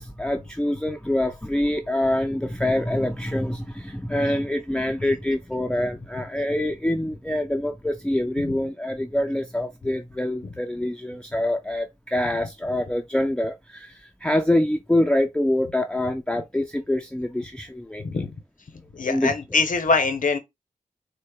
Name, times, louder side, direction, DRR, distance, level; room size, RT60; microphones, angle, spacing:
voice 1, 0.0-18.0 19.0-19.3, left 1 dB, 5° left, 0.4 m, -25 dB
voice 2, 18.0-18.3 18.9-20.4, left 4 dB, 75° left, 0.8 m, -23 dB
4.1 x 2.1 x 3.4 m
wide cardioid pair, 65°, 14 cm